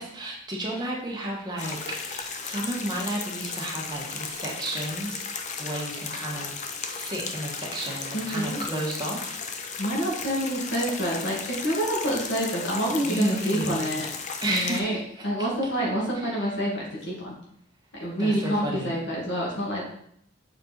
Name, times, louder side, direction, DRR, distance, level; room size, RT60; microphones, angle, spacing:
voice 1, 0.0-5.3 5.6-6.6 6.9-9.4 13.0-14.0 14.4-15.2 16.1-16.5 17.9-18.9, right 1 dB, 20° right, -3 dB, 1.6 m, -32 dB
sound 1, 1.6-14.8, left 5 dB, 40° left, 0.6 m, -35 dB
voice 2, 8.1-8.6 9.8-14.1 14.5-15.0 15.2-17.4 18.0-19.8, equal, 65° left, -4 dB, 2.0 m, -27 dB
6.7 x 4.4 x 4.0 m, 0.69 s
head